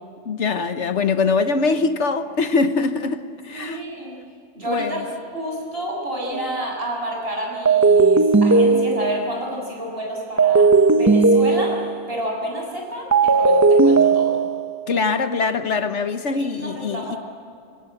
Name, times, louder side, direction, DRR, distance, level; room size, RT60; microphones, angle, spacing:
voice 1, 0.2-3.8 4.7-5.0 14.9-17.2, left 4 dB, 70° left, 1.4 m, -23 dB
voice 2, 3.5-4.2 4.5-5.0 5.3-10.7 11.0-11.8 12.1-14.4 16.4-17.2, equal, 50° right, 7.4 m, -29 dB
sound 1, 6.3-6.6 7.7-9.4 10.4-12.1 13.1-14.8, right 4 dB, 15° right, 0.8 m, -16 dB
27.0 x 25.5 x 7.9 m
omnidirectional pair, 1.2 m